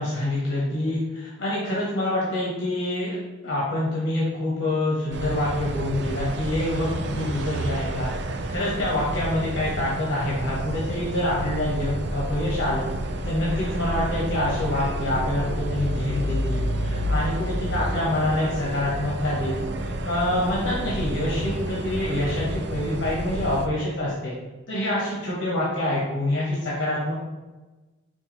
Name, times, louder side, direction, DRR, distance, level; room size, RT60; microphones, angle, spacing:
voice 1, 0.0-3.1 3.4-8.1 8.5-19.7 20.0-24.3 24.7-27.1, left 1 dB, 75° left, -6 dB, 1.1 m, -26 dB
sound 1, 5.1-23.7, right 1 dB, 65° right, 0.4 m, -30 dB
4.5 x 3.9 x 3.1 m, 1.2 s
head